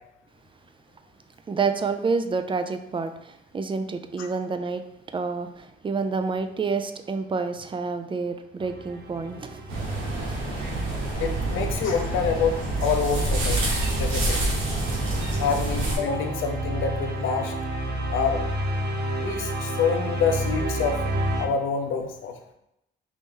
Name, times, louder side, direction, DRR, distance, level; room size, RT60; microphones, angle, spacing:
voice 1, 1.5-9.7 10.2-10.7, right 4 dB, 25° right, 8 dB, 0.4 m, -29 dB
sound 1, 8.6-21.4, right 1 dB, 55° right, 0.7 m, -31 dB
sound 2, 9.7-16.0, right 2 dB, 90° right, 1.5 m, -27 dB
voice 2, 11.2-13.6 13.9-14.4 15.4-17.5 18.1-18.4 19.2-21.0 21.4-22.3, left 6 dB, 80° left, 5 dB, 0.6 m, -26 dB
4.0 x 3.0 x 3.7 m, 0.83 s
cardioid pair, 90°, 20 cm